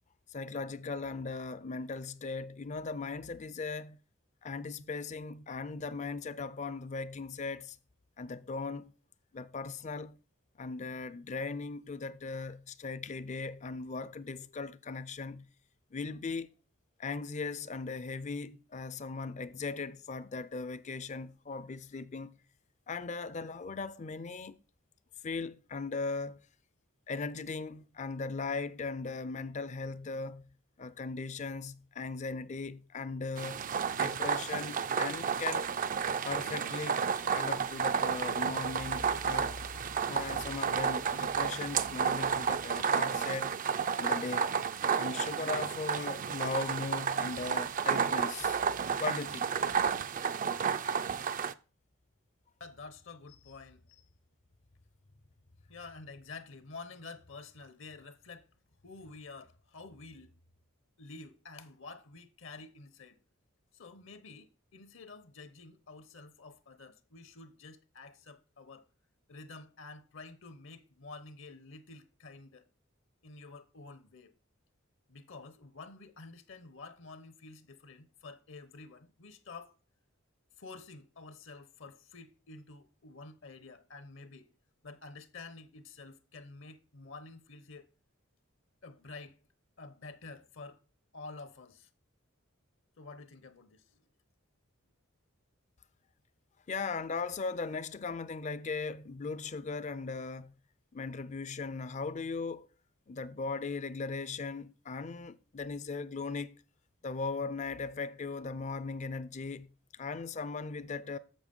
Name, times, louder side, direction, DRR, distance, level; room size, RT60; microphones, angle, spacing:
voice 1, 0.3-4.0 4.4-7.8 8.2-8.9 9.3-10.2 10.6-15.5 15.9-16.5 17.0-22.4 22.9-24.6 25.2-26.4 27.1-30.5 30.8-33.7 33.9-35.7 36.2-39.5 40.1-43.6 44.0-44.6 45.0-48.6 49.0-49.5 96.7-100.5 100.9-102.7 103.1-106.5 107.0-111.2, left 4 dB, 35° left, 0.5 m, -38 dB
sound 1, 33.4-51.5, right 6 dB, 40° right, 0.4 m, -32 dB
voice 2, 52.6-54.1 55.7-58.5 58.8-60.3 61.0-63.2 63.7-68.8 69.3-72.6 73.2-74.3 75.1-79.7 80.6-84.5 84.8-87.9 88.8-89.4 89.8-90.8 91.1-91.9 93.0-94.0, left 3 dB, 65° left, 0.9 m, -49 dB
7.3 x 6.9 x 5.3 m
head